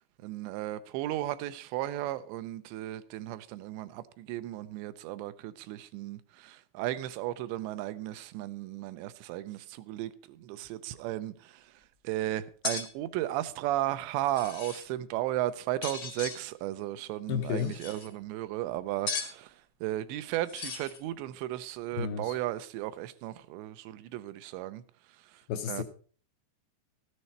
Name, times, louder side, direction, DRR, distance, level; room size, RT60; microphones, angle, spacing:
voice 1, 0.2-11.6 12.0-19.5 19.8-24.8 25.7-25.8, right 14 dB, 85° right, 2.9 m, -35 dB
sound 1, 12.6-12.8 14.2-14.9 15.8-16.4 17.5-18.1 19.1-19.3 20.5-21.0, left 5 dB, 60° left, 1.2 m, -37 dB
voice 2, 17.3-17.8 21.9-22.4 25.5-25.8, left 8 dB, 75° left, 2.3 m, -32 dB
13.5 x 9.8 x 4.3 m
omnidirectional pair, 5.0 m